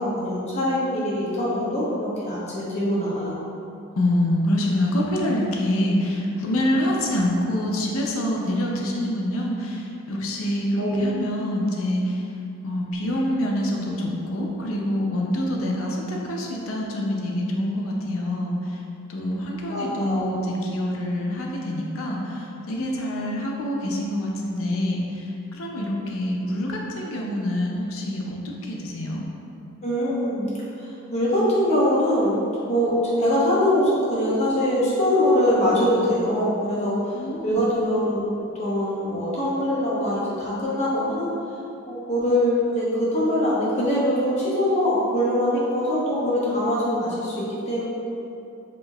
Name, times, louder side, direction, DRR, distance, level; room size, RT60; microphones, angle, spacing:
voice 1, 0.0-3.4 10.8-11.1 19.7-20.3 29.8-30.5 30.8-37.1 37.4-41.3 41.9-47.8, left 1 dB, 30° left, -8 dB, 0.8 m, -23 dB
voice 2, 4.0-12.3 12.6-18.8 19.1-29.2 37.1-37.7, left 1 dB, 70° left, -1 dB, 0.5 m, -26 dB
5.0 x 2.7 x 2.3 m, 2.7 s
head